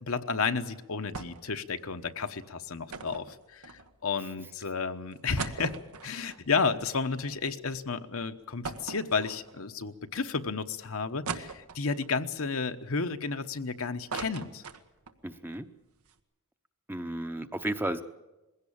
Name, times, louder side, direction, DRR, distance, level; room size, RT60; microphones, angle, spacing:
voice 1, 0.0-5.8 6.0-14.6, left 4 dB, 70° left, 8 dB, 1.1 m, -32 dB
sound 1, 1.1-1.6 1.8-1.9 2.9-4.2 4.7-4.8 5.1-7.6 7.9-8.0 8.6-9.8 10.3-10.4 11.3-12.1 12.6-13.6 13.9-15.2 15.6-15.7 15.9-16.1, right 4 dB, 90° right, 1.4 m, -40 dB
voice 2, 15.2-15.7 16.9-18.0, right 1 dB, 10° right, 9 dB, 0.8 m, -33 dB
21.5 x 16.5 x 8.7 m, 1.1 s
head